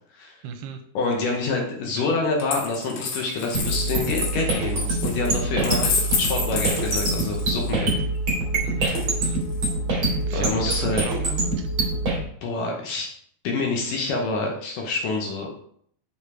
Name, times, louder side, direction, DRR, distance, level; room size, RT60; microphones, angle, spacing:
voice 1, 0.4-0.8 8.6-9.4 10.2-11.7, right 6 dB, 80° right, 6 dB, 2.7 m, -36 dB
voice 2, 0.9-5.9 6.2-8.0 10.3-11.0 12.4-13.1 13.4-15.5, left 3 dB, 70° left, 1 dB, 2.1 m, -27 dB
Coin (dropping), 2.4-7.8 8.9-9.6, left 5 dB, 90° left, 3.9 m, -29 dB
sound 1, 3.5-12.2, right 2 dB, 40° right, 2.3 m, -25 dB
7.2 x 5.4 x 4.8 m, 0.64 s
omnidirectional pair, 4.8 m